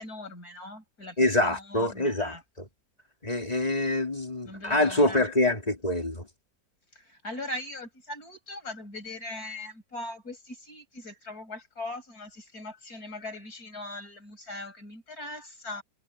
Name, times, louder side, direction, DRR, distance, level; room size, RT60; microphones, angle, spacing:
voice 1, 0.0-2.4 4.4-5.3 6.9-15.8, left 2 dB, 50° left, 7.9 m, -40 dB
voice 2, 1.2-2.4 3.2-6.2, left 1 dB, 20° left, 3.5 m, -25 dB
omnidirectional pair, 2.0 m